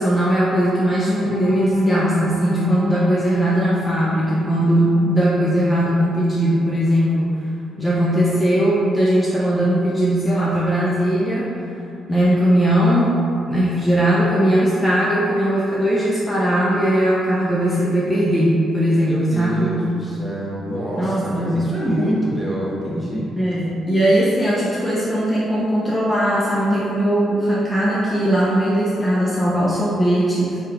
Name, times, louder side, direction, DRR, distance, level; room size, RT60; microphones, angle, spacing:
voice 1, 0.0-7.3 7.8-11.5 12.1-13.2 13.5-19.8 20.9-21.7 23.4-30.6, right 1 dB, 15° left, -7 dB, 0.4 m, -19 dB
sound 1, 0.6-6.6 7.1-7.2 7.6-7.8, left 2 dB, 65° left, 0.8 m, -30 dB
voice 2, 19.1-23.3, equal, 15° right, -7 dB, 0.9 m, -25 dB
3.0 x 2.3 x 3.4 m, 2.6 s
cardioid pair, 90°, 0 cm